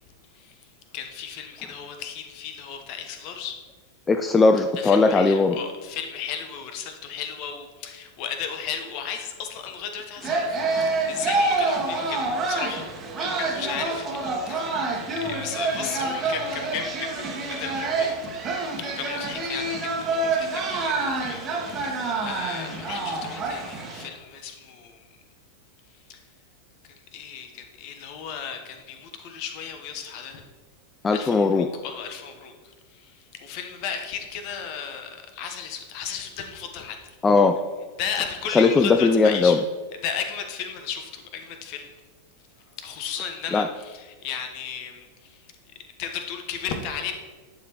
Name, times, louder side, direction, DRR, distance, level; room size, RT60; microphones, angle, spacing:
voice 1, 0.9-3.6 4.8-12.9 13.2-18.2 18.8-25.0 26.1-26.2 27.1-30.4 31.1-37.1 38.0-39.6 40.0-41.9 42.8-45.4 46.0-47.1, left 7 dB, 45° left, 6 dB, 0.9 m, -35 dB
voice 2, 4.1-5.6 31.0-31.7 37.2-37.6 38.5-39.6 43.5-43.7, left 4 dB, 15° left, 6 dB, 0.3 m, -18 dB
sound 1, 10.2-24.1, right 3 dB, 25° right, 1.2 m, -27 dB
11.0 x 5.0 x 2.9 m, 1.4 s
figure-of-eight pair, 90°, 0 cm